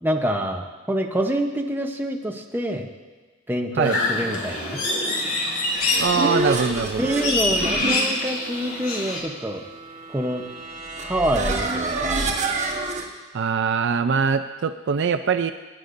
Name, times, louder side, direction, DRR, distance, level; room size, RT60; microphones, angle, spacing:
voice 1, 0.0-2.9 3.5-4.8 7.0-9.6 10.1-10.4 11.0-12.3, right 1 dB, 10° right, 2 dB, 0.8 m, -26 dB
sound 1, 3.8-9.2, left 2 dB, 80° left, 2.3 m, -26 dB
sound 2, 5.5-13.0, right 2 dB, 35° right, 1.3 m, -28 dB
voice 2, 6.0-7.1 13.3-15.5, right 6 dB, 55° right, 9 dB, 0.4 m, -23 dB
21.0 x 9.5 x 2.6 m, 1.3 s
head